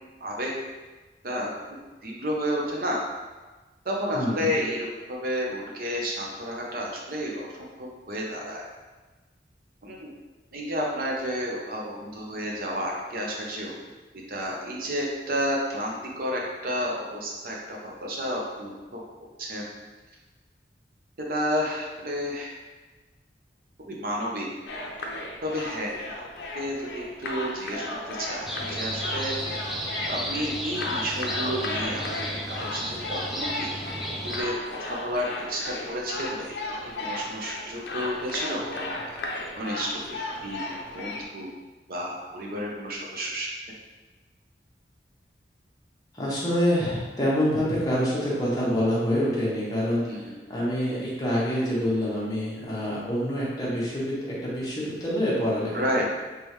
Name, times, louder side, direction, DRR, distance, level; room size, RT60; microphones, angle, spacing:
voice 1, 0.2-0.5 1.2-1.5 2.0-3.0 3.8-7.5 7.8-8.6 9.8-10.1 10.5-13.7 14.3-19.0 19.4-19.6 21.3-22.6 23.9-24.5 25.4-25.9 26.5-27.8 28.2-29.6 30.1-32.0 32.5-32.8 33.1-33.7 34.2-36.5 36.8-38.9 39.5-40.0 40.4-40.6 40.9-41.5 41.9-43.5 50.1-50.2 55.7-56.0, equal, 55° right, -2 dB, 0.7 m, -31 dB
voice 2, 4.1-4.5 46.1-54.1 54.4-56.0, equal, 20° left, -8 dB, 1.1 m, -26 dB
sound 1, 24.7-41.3, left 2 dB, 75° left, 0.5 m, -35 dB
sound 2, 28.4-34.4, equal, ahead, 0.3 m, -33 dB
3.5 x 3.3 x 3.0 m, 1.2 s
head